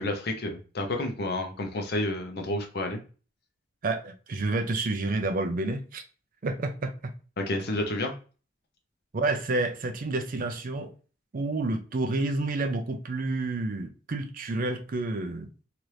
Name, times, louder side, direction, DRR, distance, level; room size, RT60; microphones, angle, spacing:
voice 1, 0.0-3.0 7.4-8.1, left 1 dB, 60° left, 0.7 m, -30 dB
voice 2, 3.8-6.0 6.4-7.1 9.1-10.9 11.3-15.5, right 2 dB, 45° right, 0.5 m, -29 dB
2.9 x 2.5 x 3.2 m
head